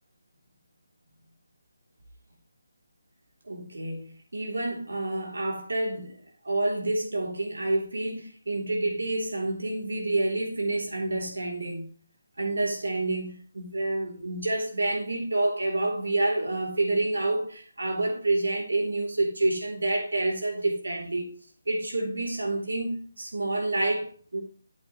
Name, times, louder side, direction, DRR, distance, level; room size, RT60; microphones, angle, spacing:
voice 1, 3.5-11.9 12.4-21.3 21.7-24.4, right 2 dB, 85° right, 3.0 m, -28 dB
8.4 x 8.1 x 3.1 m
figure-of-eight pair, 160°, 0 cm